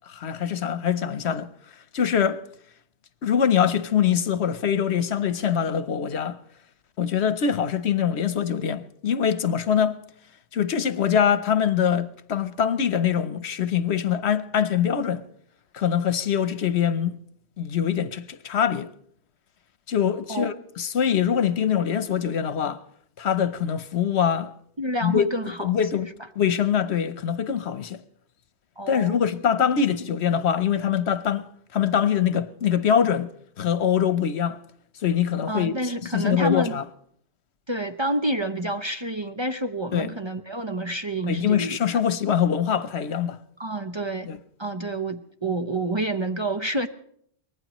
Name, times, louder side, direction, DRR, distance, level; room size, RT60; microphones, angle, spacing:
voice 1, 0.1-1.5 1.9-2.4 3.2-6.4 7.0-10.0 10.5-15.2 15.7-17.2 17.6-18.9 19.9-22.8 23.2-24.5 25.0-25.3 25.6-26.1 26.4-28.0 28.9-31.5 31.7-33.3 33.6-34.6 35.0-35.7 36.1-36.8 39.9-40.1 41.3-43.4 44.2-44.4, left 8 dB, 75° left, 1.1 m, -23 dB
voice 2, 24.8-25.7 28.8-29.2 35.5-36.8 37.7-41.8 43.6-44.3 44.6-46.9, right 1 dB, 30° right, 0.7 m, -28 dB
24.0 x 19.5 x 3.1 m
omnidirectional pair, 1.1 m